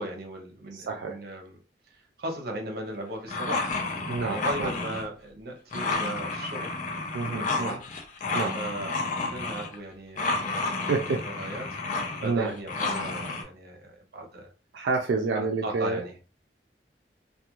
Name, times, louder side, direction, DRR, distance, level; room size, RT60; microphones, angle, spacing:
voice 1, 0.0-1.6 1.9-3.7 4.2-6.7 7.2-7.8 8.5-11.7 12.2-14.5 15.3-16.2, right 1 dB, 60° right, 2 dB, 0.7 m, -37 dB
voice 2, 0.7-1.2 4.1-4.7 7.1-7.8 8.3-8.5 10.9-11.5 12.2-12.5 14.7-16.0, right 4 dB, 85° right, 2 dB, 0.4 m, -29 dB
sound 1, 3.3-5.0 5.7-9.7 10.2-13.4, left 3 dB, 45° left, 0.5 m, -31 dB
2.4 x 2.2 x 2.9 m, 0.35 s
head